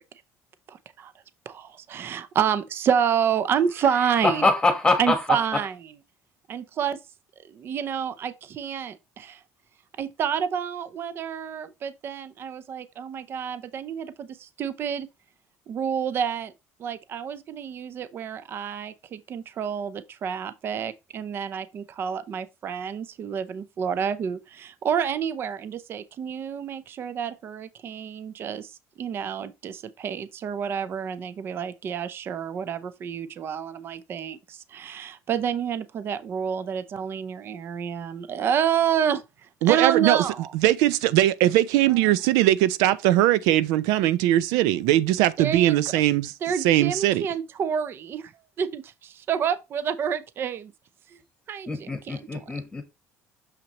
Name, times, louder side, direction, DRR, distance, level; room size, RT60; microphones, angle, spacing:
voice 1, 0.7-1.1 1.5-4.5 5.0-5.9 6.5-7.0 7.5-9.4 10.0-15.1 15.7-16.5 16.8-39.2 39.6-40.5 41.9-42.0 45.4-45.8 46.4-48.3 48.6-50.7 51.1-51.2 51.5-52.4, right 8 dB, 40° right, 0.6 m, -29 dB
voice 2, 4.2-5.2 51.7-52.8, left 3 dB, 15° left, 1.2 m, -23 dB
voice 3, 39.6-40.2 40.5-46.3 46.6-47.2, right 14 dB, 90° right, 0.5 m, -20 dB
6.5 x 5.8 x 2.9 m
cardioid pair, 135°, 6 cm